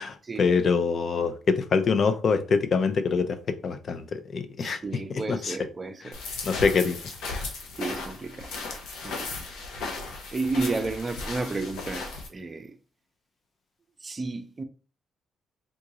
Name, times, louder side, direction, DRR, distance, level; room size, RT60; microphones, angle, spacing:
voice 1, 0.0-3.4 3.6-4.8 5.1-5.6 6.4-7.0, left 5 dB, 50° left, 0.5 m, -25 dB
voice 2, 4.6-6.2 7.8-8.5 9.0-9.3 10.3-12.7 14.0-14.6, right 3 dB, 30° right, 0.5 m, -32 dB
sound 1, 6.1-12.3, left 3 dB, 85° left, 0.8 m, -36 dB
3.7 x 2.5 x 3.0 m
cardioid pair, 90°, 0 cm